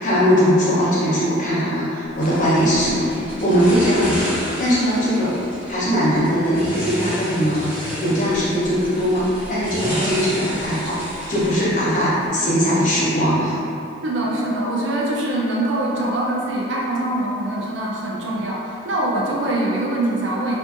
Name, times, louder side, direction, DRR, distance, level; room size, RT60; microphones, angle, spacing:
voice 1, 0.0-3.1 3.4-4.3 4.6-11.0 11.3-13.6, equal, 40° left, -10 dB, 0.7 m, -20 dB
sound 1, 2.2-12.3, equal, 5° right, 0.6 m, -31 dB
voice 2, 14.0-20.6, right 1 dB, 70° right, -3 dB, 0.4 m, -23 dB
2.6 x 2.4 x 2.4 m, 2.7 s
head